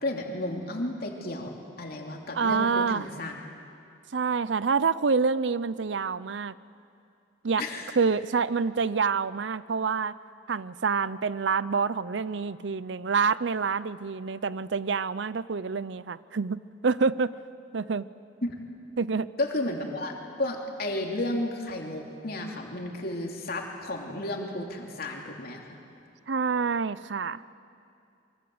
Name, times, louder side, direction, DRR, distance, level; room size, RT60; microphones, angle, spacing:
voice 1, 0.0-1.5 1.8-3.3 7.6-7.9 18.4-18.5 19.4-20.1 20.4-25.6, left 1 dB, 55° left, 1 dB, 3.1 m, -32 dB
voice 2, 2.3-3.1 4.1-6.5 7.4-7.6 8.0-10.1 10.5-17.3 17.7-18.0 19.0-19.3 26.3-27.4, right 5 dB, 70° right, 17 dB, 0.6 m, -27 dB
25.5 x 24.0 x 8.0 m, 2.5 s
head